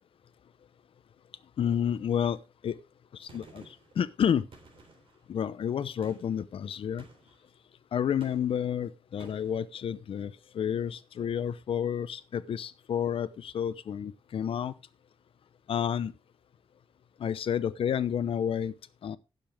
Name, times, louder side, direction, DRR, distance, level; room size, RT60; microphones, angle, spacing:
voice 1, 1.6-2.4 2.6-2.8 3.1-3.6 4.0-4.5 5.3-7.0 7.9-14.7 15.7-16.1 17.2-18.7 19.0-19.2, left 8 dB, 70° left, 0.8 m, -30 dB
Gunshot gunfire, 3.3-4.0 4.5-5.2 6.0-6.4 7.0-7.4 8.2-8.7 9.2-9.6, right 4 dB, 70° right, 3.7 m, -54 dB
16.0 x 6.9 x 3.4 m
wide cardioid pair, 155°, 10 cm